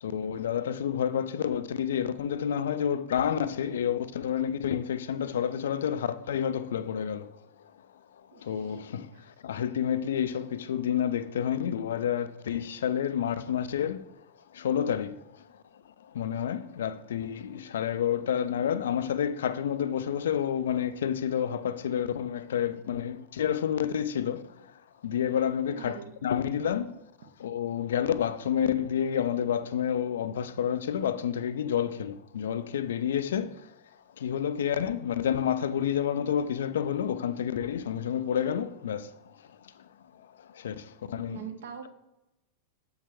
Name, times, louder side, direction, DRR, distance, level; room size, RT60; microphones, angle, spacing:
voice 1, 0.0-7.3 8.3-14.1 14.5-15.2 15.5-15.6 16.0-24.7 25.0-27.0 27.4-33.7 34.2-39.1 40.5-41.4, left 9 dB, 60° left, 0.3 m, -29 dB
voice 2, 8.3-8.8 9.1-9.2 25.7-26.1 41.3-41.9, right 9 dB, 60° right, 0.8 m, -42 dB
6.6 x 5.6 x 3.4 m
figure-of-eight pair, 90°, 0 cm